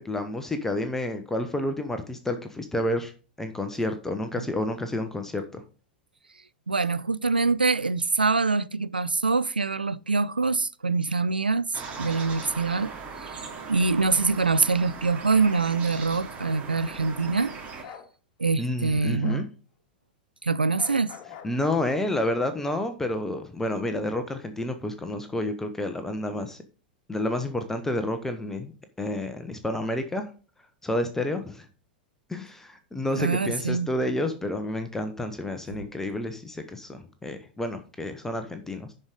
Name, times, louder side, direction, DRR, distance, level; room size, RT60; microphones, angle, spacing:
voice 1, 0.0-3.1 3.4-5.6 18.6-19.5 21.4-26.6 27.1-28.7 29.0-30.3 30.8-31.7 32.3-38.9, left 1 dB, 10° left, 1.0 m, -30 dB
voice 2, 6.7-17.5 18.4-19.5 20.4-21.1 33.2-33.9 35.7-35.8, right 4 dB, 85° right, 0.4 m, -25 dB
sound 1, 11.7-17.8, right 5 dB, 25° right, 2.7 m, -39 dB
Bark, 17.8-18.1 19.2-19.5 20.8-21.5, left 8 dB, 40° left, 1.8 m, -43 dB
11.0 x 4.9 x 5.2 m
figure-of-eight pair, 95°, 5 cm